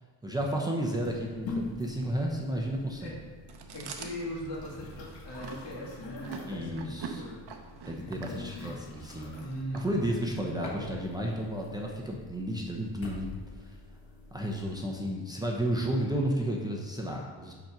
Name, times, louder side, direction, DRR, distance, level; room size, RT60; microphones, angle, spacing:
voice 1, 0.2-3.2 6.5-7.2 7.8-9.4 9.7-13.3 13.6-13.8 14.3-17.5, right 1 dB, 10° right, -1 dB, 0.7 m, -32 dB
sound 1, 1.0-14.8, left 2 dB, 85° left, 1.5 m, -45 dB
Chewing mastication, 3.5-10.5, right 5 dB, 60° right, 0.9 m, -44 dB
voice 2, 3.7-7.4 8.0-8.7 9.4-10.1, equal, 65° left, -3 dB, 2.1 m, -40 dB
5.3 x 5.3 x 5.9 m, 1.4 s
cardioid pair, 120°, 44 cm